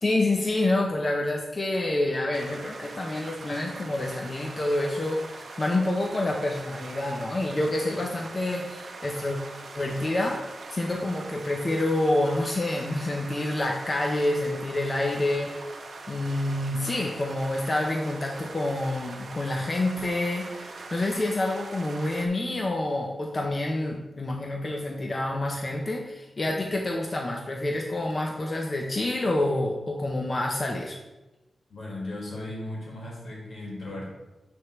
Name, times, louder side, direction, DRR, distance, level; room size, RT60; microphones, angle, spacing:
voice 1, 0.0-9.4 9.8-15.8 16.1-31.0, left 1 dB, 35° left, 0 dB, 0.6 m, -28 dB
sound 1, 2.3-22.3, right 3 dB, 65° right, 0.6 m, -42 dB
voice 2, 31.7-34.1, left 1 dB, 80° left, -3 dB, 2.0 m, -36 dB
9.5 x 3.4 x 3.0 m, 1.0 s
wide cardioid pair, 105°, 0 cm